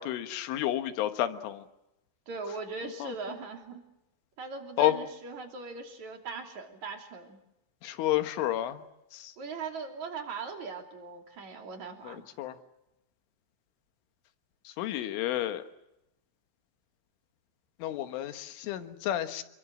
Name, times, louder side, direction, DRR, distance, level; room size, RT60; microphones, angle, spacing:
voice 1, 0.0-1.7 3.0-3.1 4.8-5.0 7.8-8.8 9.1-9.3 12.0-12.6 14.7-15.6 17.8-19.4, left 13 dB, 80° left, 9 dB, 3.9 m, -30 dB
voice 2, 2.3-3.8 4.4-7.4 9.4-12.2, right 4 dB, 40° right, 4 dB, 3.7 m, -40 dB
28.5 x 23.0 x 7.6 m, 0.91 s
omnidirectional pair, 5.6 m